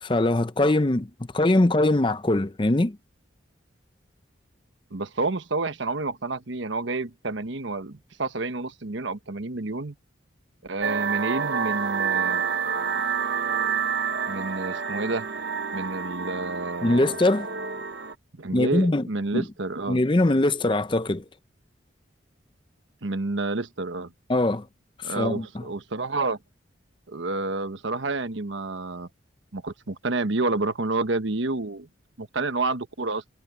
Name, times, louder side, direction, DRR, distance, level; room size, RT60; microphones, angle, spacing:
voice 1, 0.0-1.1 1.3-3.0 16.8-17.5 18.5-19.1 19.3-19.4 19.9-21.2 24.3-24.7 25.0-25.6, left 2 dB, 25° left, 0.6 m, -22 dB
voice 2, 4.9-9.9 10.6-12.5 14.3-15.3 15.7-17.2 18.3-20.0 23.0-24.1 25.0-26.4 27.1-29.1 29.5-31.9 32.2-33.2, right 3 dB, 75° right, 1.2 m, -29 dB
sound 1, 10.8-18.2, right 6 dB, 60° right, 0.9 m, -28 dB
head